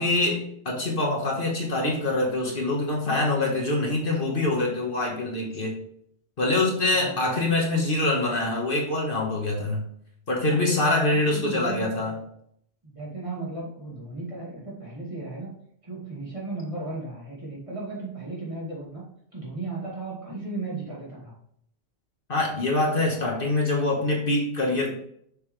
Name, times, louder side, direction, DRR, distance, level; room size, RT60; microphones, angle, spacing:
voice 1, 0.0-5.8 6.4-9.8 10.3-12.2 22.3-24.9, left 2 dB, 50° left, -1 dB, 1.5 m, -25 dB
voice 2, 6.9-7.4 10.5-10.6 11.1-12.1 12.8-15.5 15.8-19.0 19.3-21.3, right 3 dB, 30° right, -5 dB, 2.4 m, -35 dB
6.7 x 5.5 x 3.2 m, 0.68 s
omnidirectional pair, 1.2 m